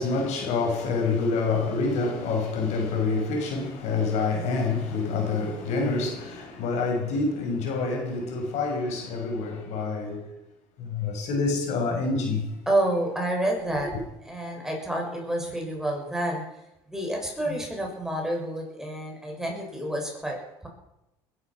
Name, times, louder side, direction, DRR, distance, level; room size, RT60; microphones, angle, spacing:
voice 1, 0.0-10.2 10.8-12.5, left 4 dB, 65° left, 5.8 m, -27 dB
voice 2, 12.7-13.9 14.2-16.4 16.9-20.7, right 1 dB, 5° right, 6.6 m, -29 dB
21.0 x 11.5 x 6.1 m
supercardioid pair, 85°, 13 cm